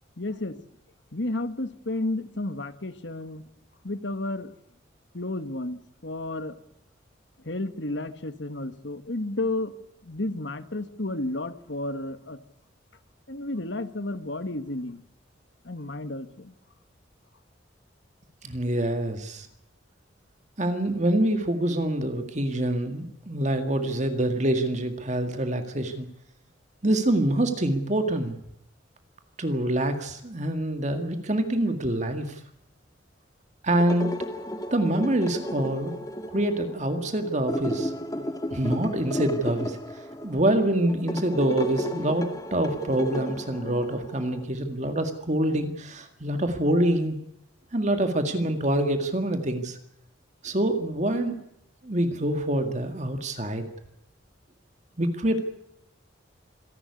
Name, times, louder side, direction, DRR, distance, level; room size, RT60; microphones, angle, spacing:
voice 1, 0.2-0.6 1.1-3.4 3.8-4.5 5.1-6.5 7.4-9.7 10.0-12.4 13.3-15.0 15.6-16.5, left 2 dB, 65° left, 11 dB, 1.6 m, -32 dB
voice 2, 18.4-19.5 20.6-26.1 26.8-28.4 29.4-32.4 33.6-34.1 34.7-35.9 36.3-37.9 38.5-39.8 40.2-47.2 47.7-49.8 50.4-51.4 51.8-53.6 55.0-55.4, right 1 dB, 35° right, 7 dB, 2.0 m, -25 dB
sound 1, 33.7-44.4, left 1 dB, 20° left, 1.9 m, -34 dB
26.5 x 12.0 x 9.7 m, 0.80 s
head